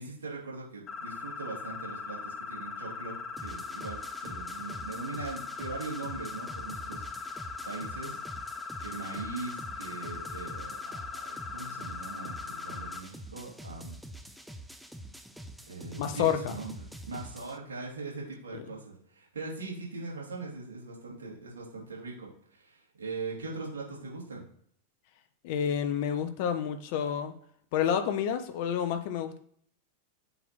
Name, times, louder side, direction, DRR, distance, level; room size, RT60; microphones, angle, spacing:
voice 1, 0.0-7.0 7.3-8.2 8.8-14.0 15.7-24.4, right 3 dB, 70° right, -4 dB, 2.6 m, -41 dB
sound 1, 0.9-13.0, left 4 dB, 30° left, 1.0 m, -40 dB
sound 2, 3.4-17.6, right 1 dB, ahead, 0.5 m, -46 dB
voice 2, 16.0-16.5 25.4-27.3 27.7-29.4, left 8 dB, 50° left, 8 dB, 0.7 m, -29 dB
7.9 x 2.9 x 4.2 m, 0.62 s
figure-of-eight pair, 90°, 0 cm